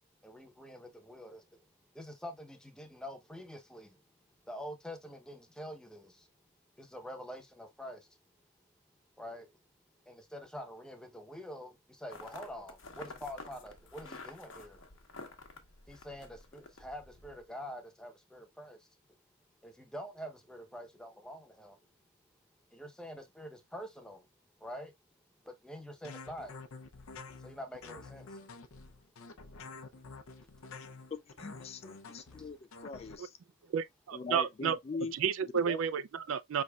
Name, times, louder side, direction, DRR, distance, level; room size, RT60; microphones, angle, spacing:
voice 1, 0.2-1.4 1.9-3.9 4.5-6.1 6.8-8.0 9.2-9.5 10.1-14.8 15.9-18.8 19.6-21.8 22.7-24.2 24.6-24.9 25.6-26.5 27.4-28.3, equal, 5° left, 0.7 m, -46 dB
sound 1, 12.1-17.4, left 3 dB, 65° left, 1.0 m, -50 dB
sound 2, 26.0-33.2, left 4 dB, 80° left, 0.6 m, -49 dB
voice 2, 31.4-32.6 32.8-33.4 34.1-35.1 35.6-35.8, left 4 dB, 30° left, 0.3 m, -41 dB
voice 3, 33.7-34.8 35.1-36.6, right 7 dB, 70° right, 0.4 m, -31 dB
5.3 x 3.4 x 2.3 m
head